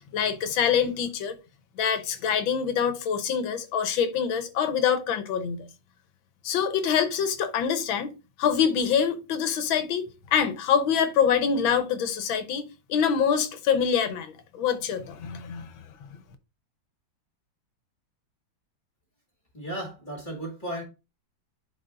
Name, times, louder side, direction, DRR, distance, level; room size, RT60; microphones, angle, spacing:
voice 1, 0.1-1.4 1.8-5.7 6.4-8.1 8.4-10.0 10.3-15.8, left 7 dB, 90° left, 1.7 m, -25 dB
voice 2, 19.5-20.8, right 1 dB, 25° left, 2.1 m, -35 dB
11.0 x 4.2 x 2.5 m
omnidirectional pair, 2.1 m